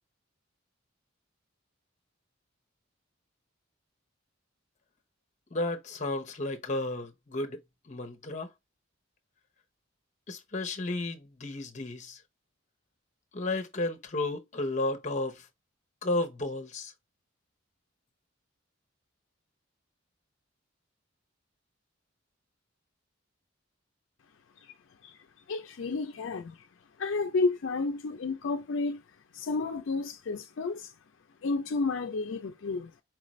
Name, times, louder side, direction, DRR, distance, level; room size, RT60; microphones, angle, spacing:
voice 1, 5.5-7.6 7.9-8.5 10.3-12.2 13.3-15.4 16.0-16.9, left 2 dB, 35° left, 0.7 m, -33 dB
voice 2, 25.5-26.6 27.0-29.0 29.3-30.9 31.4-32.9, left 3 dB, 70° left, 0.4 m, -31 dB
4.7 x 2.5 x 3.0 m
head